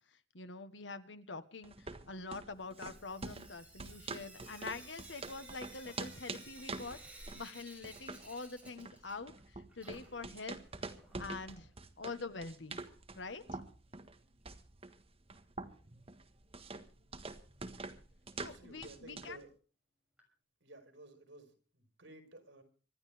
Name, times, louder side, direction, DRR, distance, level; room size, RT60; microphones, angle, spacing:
voice 1, 0.3-7.0 7.3-10.6 11.2-11.7 12.0-12.8 13.2-13.6 18.4-19.4, left 3 dB, 85° left, 11 dB, 1.5 m, -45 dB
sound 1, 1.6-19.4, right 3 dB, 35° right, 1.5 m, -47 dB
Sink (filling or washing) / Drip, 2.7-9.4 9.7-11.6 12.8-12.9 13.2-13.3 13.6-13.7 16.6-16.7 17.2-17.3 17.8-17.9 18.5-18.6 19.2-19.3 20.2-20.3, right 2 dB, 10° right, 6.4 m, -56 dB
voice 2, 18.4-19.5 20.6-22.6, right 1 dB, 80° right, 7 dB, 4.6 m, -55 dB
26.0 x 12.0 x 3.4 m, 0.38 s
head